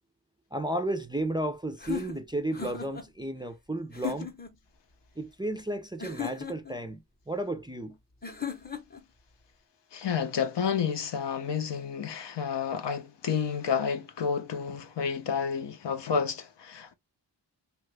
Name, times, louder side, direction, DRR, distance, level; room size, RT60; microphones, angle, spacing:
voice 1, 0.5-4.3 5.2-8.0, right 1 dB, 10° right, 0.3 m, -33 dB
sound 1, 1.8-3.1 3.9-4.5 6.0-6.8 8.2-9.0, left 8 dB, 20° left, 0.7 m, -37 dB
voice 2, 9.9-16.9, left 6 dB, 70° left, 0.7 m, -30 dB
2.9 x 2.3 x 3.2 m
wide cardioid pair, 85°, 43 cm